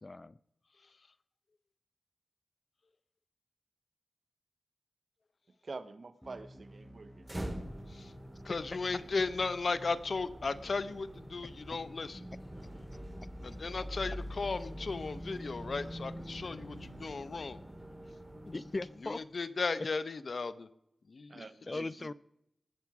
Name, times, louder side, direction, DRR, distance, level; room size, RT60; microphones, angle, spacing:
voice 1, 0.0-0.4 8.5-8.6 18.5-19.2 19.8-19.9 21.7-22.1, left 2 dB, 35° left, 18 dB, 0.4 m, -38 dB
voice 2, 5.6-7.5 21.3-22.1, right 3 dB, 55° right, 12 dB, 0.8 m, -47 dB
sound 1, 6.2-18.2, equal, ahead, 1.0 m, -54 dB
sound 2, 7.2-19.2, equal, 15° right, 2.4 m, -45 dB
voice 3, 8.4-12.2 13.4-17.6 19.0-20.7 21.1-21.4, left 4 dB, 65° left, 13 dB, 0.7 m, -36 dB
19.0 x 7.2 x 4.7 m, 0.78 s
wide cardioid pair, 85°, 0 cm